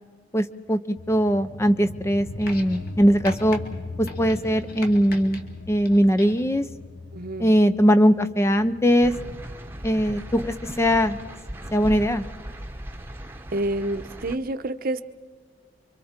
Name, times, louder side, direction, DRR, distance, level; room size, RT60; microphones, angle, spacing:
voice 1, 0.3-3.6 4.2-5.4 5.7-6.6 7.4-9.1 9.8-11.2 11.7-12.2, equal, 15° left, 11 dB, 0.6 m, -20 dB
sound 1, 1.0-12.1, left 2 dB, 90° left, 1.0 m, -40 dB
sound 2, 2.4-2.9 3.2-3.6 4.0-5.4 5.9-6.5 7.5-7.6, left 2 dB, 55° left, 2.4 m, -40 dB
voice 2, 7.1-7.5 13.5-15.0, right 1 dB, 50° right, 10 dB, 0.9 m, -28 dB
sound 3, 9.0-14.4, right 1 dB, 10° right, 1.0 m, -37 dB
29.5 x 24.5 x 4.4 m, 1.5 s
head